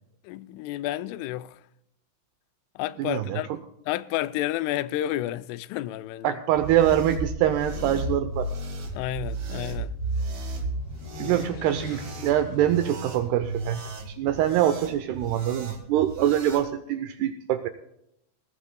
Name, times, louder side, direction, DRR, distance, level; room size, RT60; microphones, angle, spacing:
voice 1, 0.2-1.6 2.8-6.4 8.9-9.9 11.2-11.5, left 14 dB, 85° left, 3.1 m, -31 dB
voice 2, 3.0-3.4 6.2-8.5 11.2-17.7, right 11 dB, 85° right, 2.3 m, -24 dB
sound 1, 6.5-16.7, right 2 dB, 65° right, 1.2 m, -34 dB
sound 2, 9.1-13.8, equal, 65° left, 5.3 m, -45 dB
20.0 x 17.5 x 2.2 m
omnidirectional pair, 5.6 m